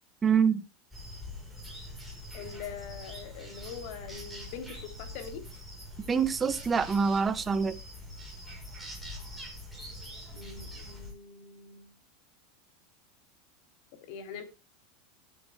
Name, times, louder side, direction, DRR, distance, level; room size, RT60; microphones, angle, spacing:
voice 1, 0.2-0.6 6.1-7.8, right 6 dB, 20° right, 12 dB, 1.2 m, -25 dB
sound 1, 0.9-11.1, left 1 dB, ahead, 5.4 m, -44 dB
voice 2, 2.3-5.5 10.3-11.9 14.1-14.4, left 7 dB, 60° left, 7 dB, 3.1 m, -43 dB
20.5 x 9.4 x 2.2 m, 0.25 s
supercardioid pair, 135°, 0 cm